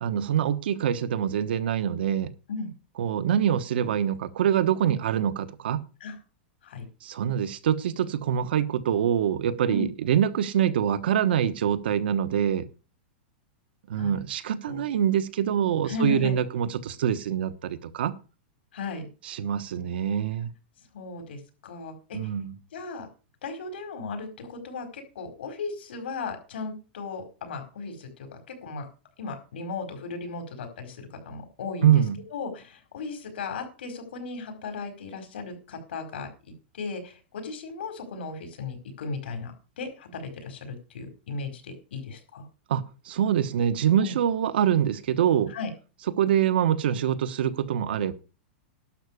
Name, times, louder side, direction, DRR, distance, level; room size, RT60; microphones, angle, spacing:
voice 1, 0.0-2.3 3.0-5.8 7.0-12.7 13.9-18.1 19.2-20.5 22.1-22.5 31.8-32.2 42.7-45.5 46.2-48.1, right 9 dB, 70° right, 1.2 m, -25 dB
voice 2, 15.8-16.4 18.7-19.1 20.9-22.3 22.7-23.1 23.4-28.9 29.2-32.0 32.3-36.3 36.7-42.5 44.0-44.2 45.5-45.7, left 3 dB, 85° left, 4.8 m, -36 dB
11.5 x 6.1 x 8.3 m
supercardioid pair, 175°, 6 cm